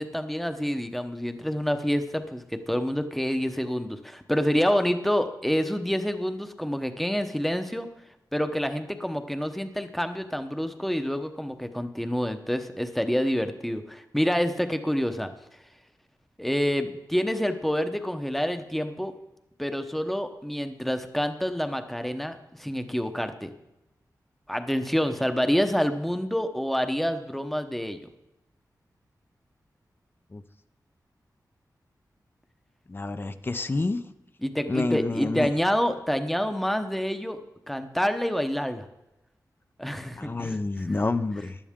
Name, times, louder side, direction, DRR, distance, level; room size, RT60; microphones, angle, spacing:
voice 1, 0.0-7.9 8.3-15.3 16.4-19.1 19.6-23.5 24.5-28.0 34.4-37.4 37.7-38.8 39.8-40.6, equal, ahead, 8 dB, 0.9 m, -27 dB
voice 2, 32.9-34.0 34.7-35.5 40.2-41.6, left 3 dB, 30° left, 11 dB, 0.6 m, -28 dB
16.0 x 11.5 x 3.7 m, 0.93 s
wide cardioid pair, 110°, 7 cm